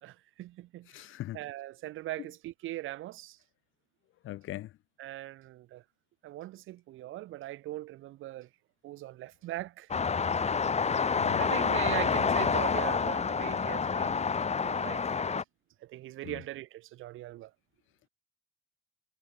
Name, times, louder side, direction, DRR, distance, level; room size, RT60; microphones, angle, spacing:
voice 1, 0.0-1.0 1.3-3.4 5.0-5.8 6.2-8.5 8.8-9.9 11.4-14.2 14.6-15.4 15.8-17.5, right 16 dB, 90° right, 5.3 m, -40 dB
voice 2, 0.9-1.4 4.2-4.7 11.2-11.4 16.2-16.4, left 15 dB, 90° left, 3.4 m, -39 dB
sound 1, 9.9-15.4, left 5 dB, 35° left, 1.5 m, -28 dB
cardioid pair, 90°, 20 cm